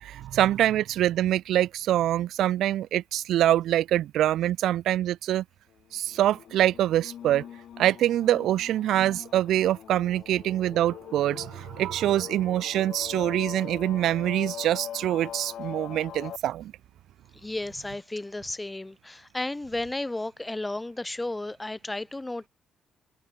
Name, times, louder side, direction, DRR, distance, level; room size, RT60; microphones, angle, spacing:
voice 1, 0.0-5.4 5.9-7.4 7.8-16.7, right 12 dB, 80° right, 0.3 m, -25 dB
sound 1, 6.1-16.4, left 10 dB, 65° left, 6.2 m, -42 dB
voice 2, 17.3-22.5, left 2 dB, 15° left, 1.3 m, -33 dB
cardioid pair, 90°, 0 cm